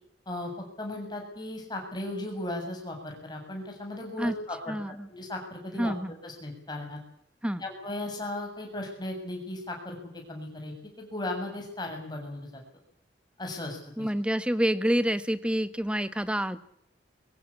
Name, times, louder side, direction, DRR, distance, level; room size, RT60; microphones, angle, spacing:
voice 1, 0.3-4.8 5.1-5.9 6.2-7.0 7.6-10.0 10.3-12.6 13.4-13.8, left 1 dB, 20° left, 2 dB, 7.3 m, -36 dB
voice 2, 4.7-5.1 5.8-6.1 7.4-7.6 14.0-16.6, equal, 5° right, 12 dB, 1.2 m, -27 dB
23.5 x 17.0 x 8.7 m, 0.70 s
head